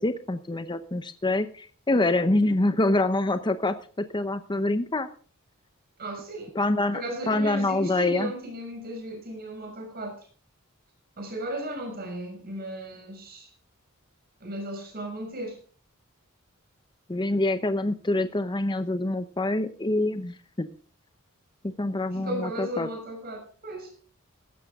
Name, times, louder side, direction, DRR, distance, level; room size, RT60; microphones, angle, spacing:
voice 1, 0.0-5.1 6.5-7.0 7.3-8.3 17.1-20.7 21.6-22.9, left 2 dB, 20° left, 10 dB, 0.8 m, -26 dB
voice 2, 6.0-6.6 6.9-10.2 11.2-13.5 14.4-15.6 22.1-23.9, right 1 dB, 45° right, 1 dB, 6.3 m, -35 dB
16.0 x 13.0 x 3.6 m, 0.41 s
head